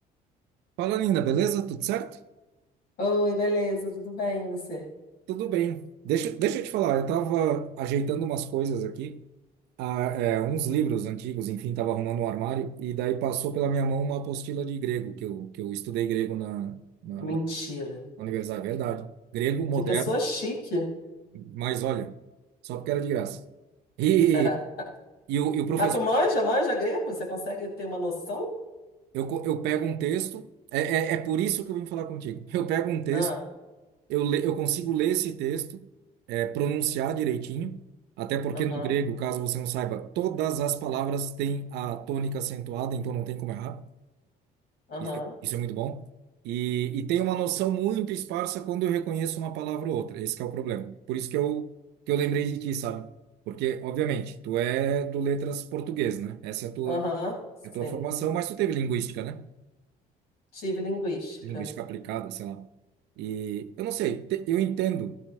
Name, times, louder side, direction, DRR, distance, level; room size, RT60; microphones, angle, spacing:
voice 1, 0.8-2.2 5.3-9.2 9.8-17.4 18.2-20.0 21.3-22.2 22.6-23.4 24.0-24.5 25.3-25.9 29.1-33.3 34.1-35.9 36.3-37.8 38.2-43.8 45.0-46.0 46.4-51.7 52.1-53.1 53.5-57.0 57.7-59.5 61.4-62.7 63.2-65.2, right 9 dB, 85° right, 0.7 m, -28 dB
voice 2, 3.0-4.8 17.1-18.0 19.9-20.9 24.3-24.6 25.8-28.5 33.1-33.4 38.5-38.9 44.9-45.3 56.8-57.3 57.8-58.0 60.5-61.7, left 1 dB, 70° left, 5.0 m, -29 dB
15.5 x 12.5 x 3.2 m
cardioid pair, 110°, 17 cm